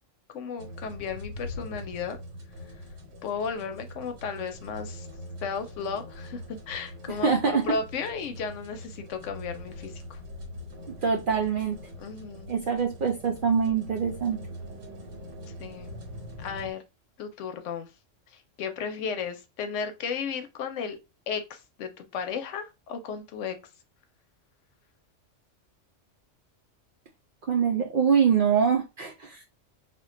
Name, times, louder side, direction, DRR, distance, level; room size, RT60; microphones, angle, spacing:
voice 1, 0.3-2.2 3.2-5.1 5.4-10.2 12.0-12.5 15.6-16.0 16.4-16.8 17.2-17.9 18.3-21.0 21.3-23.6, left 6 dB, 75° left, 0.9 m, -34 dB
sound 1, 0.6-16.7, left 1 dB, 85° right, 1.3 m, -43 dB
voice 2, 7.1-7.7 11.0-11.8 12.5-14.4 27.5-29.4, right 6 dB, 60° right, 0.5 m, -24 dB
2.5 x 2.2 x 3.7 m
omnidirectional pair, 1.3 m